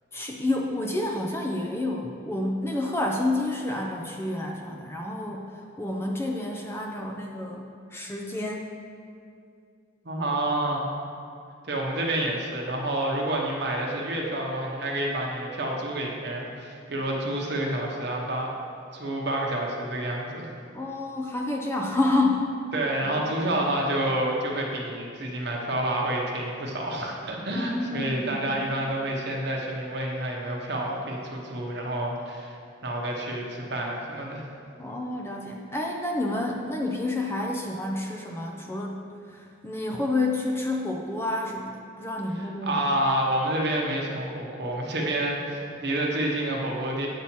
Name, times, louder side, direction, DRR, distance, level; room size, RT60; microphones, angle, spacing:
voice 1, 0.1-8.7 20.7-22.5 23.1-23.3 27.5-28.6 34.8-39.1 39.3-42.8, left 2 dB, 10° left, 0 dB, 0.4 m, -29 dB
voice 2, 10.0-10.9 11.7-18.5 18.9-20.5 22.7-34.5 42.3-47.1, right 1 dB, 55° right, -1 dB, 0.9 m, -29 dB
8.3 x 2.8 x 6.0 m, 2.4 s
head